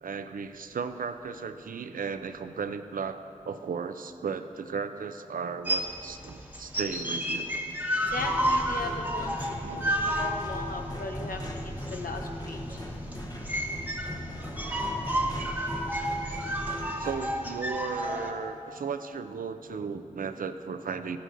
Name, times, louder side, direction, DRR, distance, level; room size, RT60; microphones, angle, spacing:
voice 1, 0.0-7.5 9.6-9.9 17.0-21.2, right 5 dB, 80° right, 10 dB, 0.4 m, -35 dB
sound 1, 5.7-18.3, equal, 10° right, 1.1 m, -31 dB
sound 2, 8.0-17.2, left 1 dB, 25° left, 1.0 m, -38 dB
voice 2, 8.1-9.4 9.9-12.6, left 2 dB, 90° left, 3 dB, 0.9 m, -37 dB
14.5 x 11.0 x 2.6 m, 2.6 s
cardioid pair, 50°, 14 cm